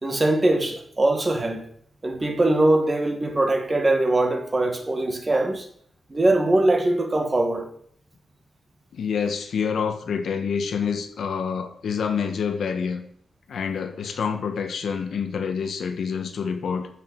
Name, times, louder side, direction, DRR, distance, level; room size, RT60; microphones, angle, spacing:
voice 1, 0.0-1.6 2.0-5.7 6.1-7.7, right 2 dB, 20° right, 2.1 m, -22 dB
voice 2, 8.9-13.0 13.5-16.9, left 6 dB, 65° left, 1.6 m, -27 dB
13.5 x 6.9 x 8.2 m
wide cardioid pair, 170°, 0 cm